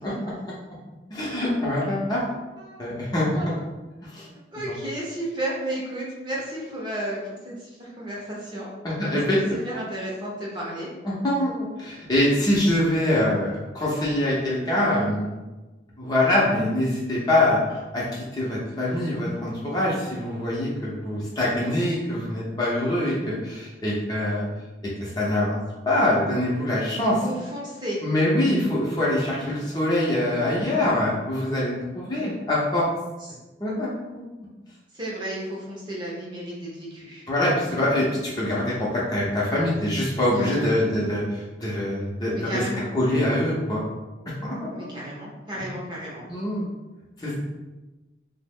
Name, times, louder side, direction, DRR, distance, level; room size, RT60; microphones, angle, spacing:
voice 1, 1.1-2.2 2.8-3.3 4.1-4.3 8.8-9.6 11.0-11.5 11.8-15.3 16.0-24.4 25.0-25.6 25.9-27.2 28.0-32.9 33.6-33.9 34.1-34.2 37.3-42.6 42.9-43.8 44.6-44.7 46.3-46.6 47.2-47.3, left 1 dB, 20° left, -6 dB, 0.6 m, -24 dB
voice 2, 4.5-8.7 9.2-10.9 27.0-28.0 32.2-32.3 33.3-33.4 34.9-37.2 40.3-40.7 42.3-42.9 44.7-46.2, right 1 dB, 25° right, -5 dB, 0.7 m, -33 dB
3.0 x 2.0 x 3.5 m, 1.1 s
head